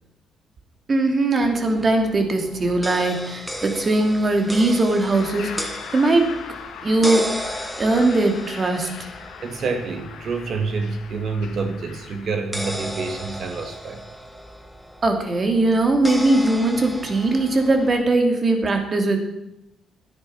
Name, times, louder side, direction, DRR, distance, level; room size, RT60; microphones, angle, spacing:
voice 1, 0.9-6.4 6.8-7.3 7.8-9.1 15.0-19.2, right 2 dB, 35° right, 4 dB, 2.8 m, -20 dB
sound 1, 1.4-18.0, equal, ahead, 1.4 m, -35 dB
sound 2, 5.1-13.4, left 7 dB, 80° left, 1.8 m, -40 dB
voice 2, 9.4-14.0, right 4 dB, 60° right, 6 dB, 2.0 m, -27 dB
12.5 x 9.6 x 6.0 m, 0.85 s
cardioid pair, 90°, 0 cm